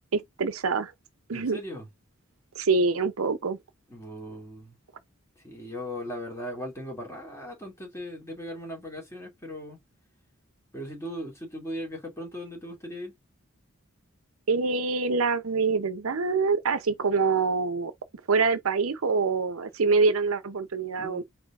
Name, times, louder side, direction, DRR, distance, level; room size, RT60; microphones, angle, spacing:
voice 1, 0.1-0.9 1.3-1.6 2.6-3.6 14.5-17.9 18.3-21.2, right 4 dB, 85° right, 0.7 m, -25 dB
voice 2, 1.3-1.9 3.9-4.8 5.4-9.8 10.7-13.1 21.0-21.2, equal, 15° left, 2.3 m, -38 dB
4.7 x 2.9 x 3.5 m
head